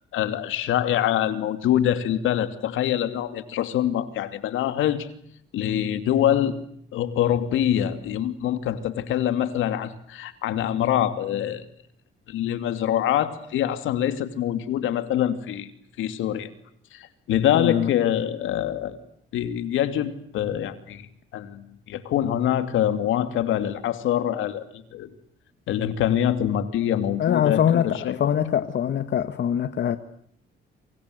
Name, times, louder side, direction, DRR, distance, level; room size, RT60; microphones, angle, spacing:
voice 1, 0.1-5.1 5.5-6.6 6.9-11.7 12.3-15.7 16.0-16.5 16.9-19.0 19.3-25.1 25.7-28.2, left 11 dB, 85° left, 2.8 m, -25 dB
voice 2, 17.5-17.9 27.2-30.0, left 9 dB, 60° left, 1.6 m, -23 dB
28.5 x 26.0 x 8.0 m
cardioid pair, 90°, 20 cm